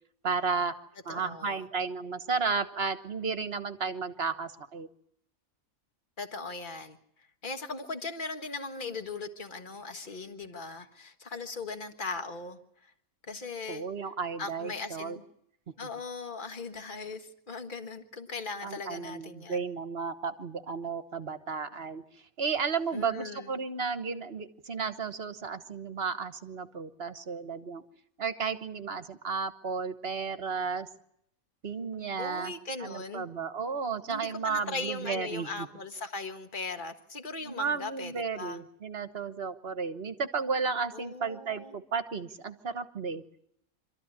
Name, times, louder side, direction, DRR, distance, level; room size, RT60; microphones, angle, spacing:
voice 1, 0.2-0.7 1.0-4.9 13.7-15.2 18.6-22.0 22.4-27.8 28.2-30.9 31.6-32.5 32.8-35.7 37.4-43.2, right 5 dB, 50° right, 10 dB, 1.4 m, -33 dB
voice 2, 1.1-1.6 6.2-12.9 13.3-13.9 14.4-15.2 15.8-19.6 22.9-23.5 32.2-33.3 34.1-38.6 40.9-41.8, left 3 dB, 35° left, 7 dB, 1.7 m, -39 dB
26.0 x 14.0 x 9.7 m, 0.73 s
omnidirectional pair, 1.4 m